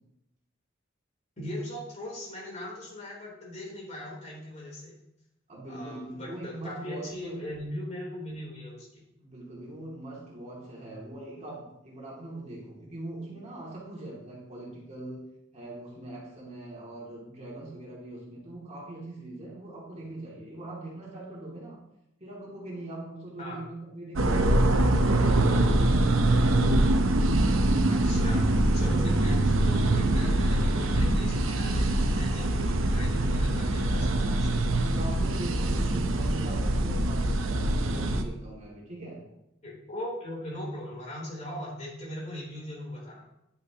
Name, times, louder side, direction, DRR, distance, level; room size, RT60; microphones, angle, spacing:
voice 1, 1.4-5.0 5.7-9.0 23.4-23.6 27.9-34.7 39.6-43.2, left 1 dB, 35° left, -3 dB, 3.4 m, -39 dB
voice 2, 5.5-7.4 9.2-15.2 15.5-21.8 22.2-25.8 34.9-39.2, right 2 dB, 35° right, -4 dB, 2.4 m, -41 dB
sound 1, 24.2-38.2, right 1 dB, 85° right, 0.8 m, -24 dB
10.0 x 8.4 x 2.9 m, 0.83 s
head